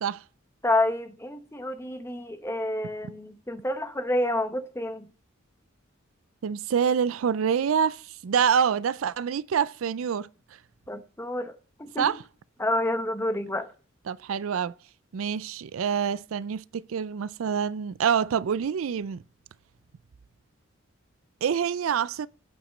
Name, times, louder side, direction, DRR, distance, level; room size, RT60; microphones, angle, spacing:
voice 1, 0.6-5.1 10.9-11.5 11.8-12.1 12.6-13.7, left 1 dB, 15° left, 0.9 m, -28 dB
voice 2, 6.4-10.3 12.0-12.2 14.1-14.7 15.1-19.2 21.4-22.3, right 7 dB, 80° right, 0.4 m, -26 dB
8.9 x 5.0 x 6.6 m
head